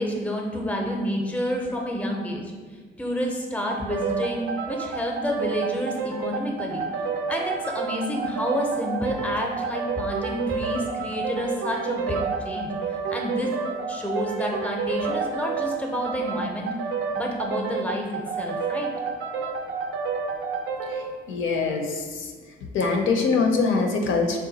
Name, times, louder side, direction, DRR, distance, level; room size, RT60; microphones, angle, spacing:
voice 1, 0.0-2.4 3.0-6.9 7.3-12.7 13.1-13.5 13.9-16.7 17.2-18.9, equal, 5° left, 0 dB, 0.6 m, -29 dB
sound 1, 3.7-21.1, right 5 dB, 75° right, 0.5 m, -29 dB
voice 2, 20.9-22.3 22.7-24.4, left 4 dB, 80° left, 2 dB, 0.6 m, -24 dB
4.0 x 2.2 x 3.9 m, 1.5 s
cardioid pair, 90°, 20 cm